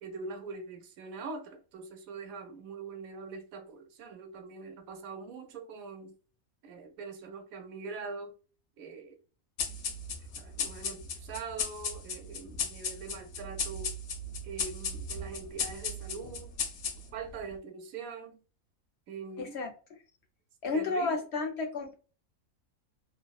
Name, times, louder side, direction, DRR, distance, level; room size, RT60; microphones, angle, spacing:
voice 1, 0.0-6.1 6.6-8.4 8.8-9.2 10.4-13.9 14.4-16.5 17.1-18.4 19.1-19.6 20.7-21.2, right 4 dB, 80° right, 1.0 m, -43 dB
sound 1, 9.6-17.3, left 4 dB, 85° left, 1.1 m, -36 dB
voice 2, 19.4-19.7 20.6-21.9, left 3 dB, 65° left, 0.7 m, -32 dB
2.9 x 2.0 x 2.2 m
omnidirectional pair, 1.5 m